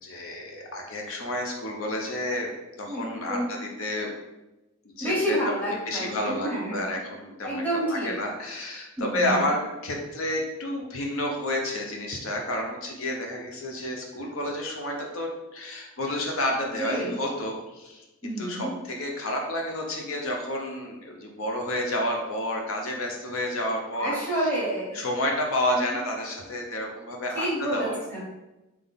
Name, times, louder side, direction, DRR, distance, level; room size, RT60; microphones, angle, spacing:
voice 1, 0.0-2.5 2.8-4.1 4.8-5.4 5.9-18.0 18.4-24.5 24.9-28.0, left 1 dB, 85° left, 1 dB, 0.9 m, -30 dB
voice 2, 2.9-3.5 5.0-6.8 7.4-8.1 9.0-9.5 16.8-17.1 18.2-18.7 24.0-25.0 25.7-26.0 27.3-28.2, equal, 10° left, -8 dB, 1.5 m, -29 dB
3.9 x 3.2 x 3.6 m, 1.0 s
head